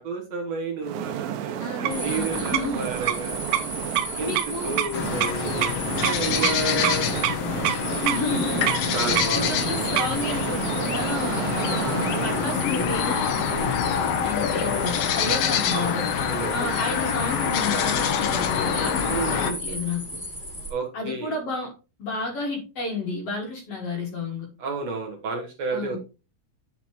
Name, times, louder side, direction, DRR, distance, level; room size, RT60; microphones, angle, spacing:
voice 1, 0.0-3.4 4.2-7.4 8.9-9.9 11.7-11.8 13.5-13.7 15.7-16.7 19.0-19.6 20.7-21.3 24.6-26.0, right 3 dB, 60° right, 0 dB, 2.2 m, -31 dB
sound 1, 0.8-12.7, right 12 dB, 85° right, 2.4 m, -29 dB
voice 2, 1.6-2.8 4.2-4.8 5.8-6.1 6.7-6.8 7.9-9.0 9.3-13.5 14.2-20.2 20.9-21.7 22.0-24.5 25.7-26.0, left 2 dB, 55° left, 1 dB, 2.3 m, -31 dB
sound 2, 1.9-20.7, left 1 dB, 15° left, 2.8 m, -36 dB
sound 3, 4.9-19.5, left 7 dB, 80° left, 1.4 m, -26 dB
9.1 x 5.8 x 3.1 m, 0.32 s
omnidirectional pair, 4.0 m